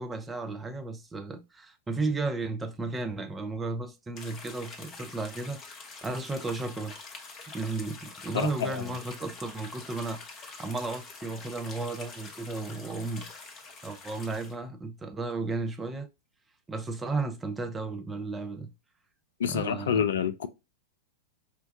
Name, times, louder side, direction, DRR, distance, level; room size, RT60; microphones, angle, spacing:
voice 1, 0.0-5.6 6.0-7.0 7.5-13.3 13.8-16.1 16.7-18.7 19.5-20.1, right 3 dB, 15° right, 0.6 m, -34 dB
sound 1, 4.2-14.5, left 4 dB, 30° left, 0.8 m, -46 dB
voice 2, 8.3-8.8 19.4-20.5, left 7 dB, 65° left, 0.3 m, -28 dB
4.5 x 2.2 x 2.6 m
figure-of-eight pair, 90°, 0 cm